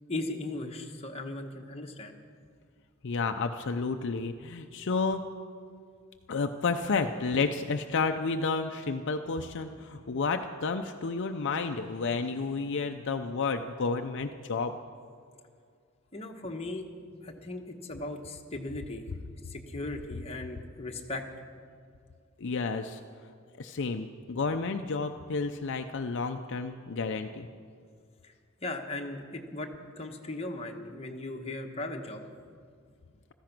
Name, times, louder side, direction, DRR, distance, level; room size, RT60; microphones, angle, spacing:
voice 1, 0.1-2.1 16.1-16.9 17.2-19.0 19.5-21.2 28.2-28.3 28.6-29.7 30.0-32.2, left 2 dB, 30° left, 2 dB, 1.2 m, -37 dB
voice 2, 3.0-5.3 6.3-14.7 22.4-23.0 23.6-27.5, left 4 dB, 60° left, 6 dB, 0.6 m, -31 dB
15.5 x 14.0 x 6.0 m, 2.2 s
head